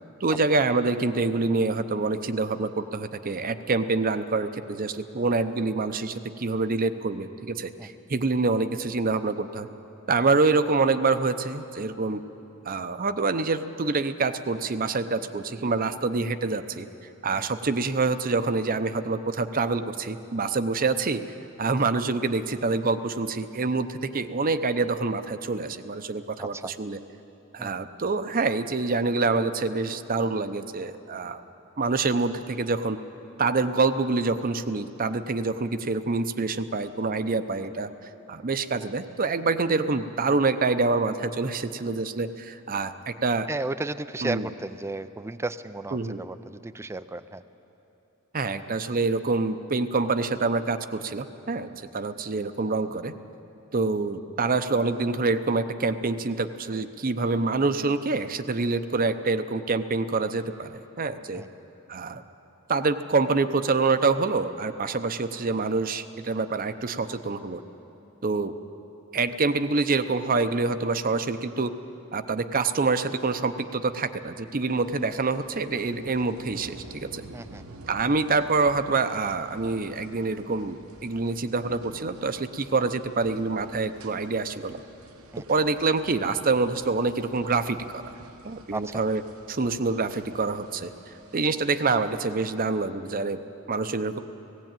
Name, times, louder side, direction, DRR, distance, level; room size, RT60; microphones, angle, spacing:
voice 1, 0.2-9.7 10.1-12.2 12.7-16.9 17.2-21.2 21.6-27.0 27.5-31.4 31.8-33.0 33.4-37.9 38.3-43.5 44.2-44.5 45.9-46.2 48.3-53.1 53.7-61.4 61.9-62.2 62.7-67.6 68.2-68.5 69.1-71.7 72.1-77.2 77.9-84.8 85.4-88.1 88.4-89.2 89.5-90.9 91.3-94.2, right 3 dB, 40° right, 11 dB, 0.7 m, -26 dB
voice 2, 26.4-26.7 27.6-27.9 43.5-47.4 61.3-61.5 77.3-77.6 85.3-85.4 88.7-89.0, right 2 dB, 10° right, 13 dB, 0.4 m, -34 dB
sound 1, 74.7-92.3, right 2 dB, 70° right, 1.0 m, -49 dB
18.0 x 16.0 x 9.0 m, 3.0 s
head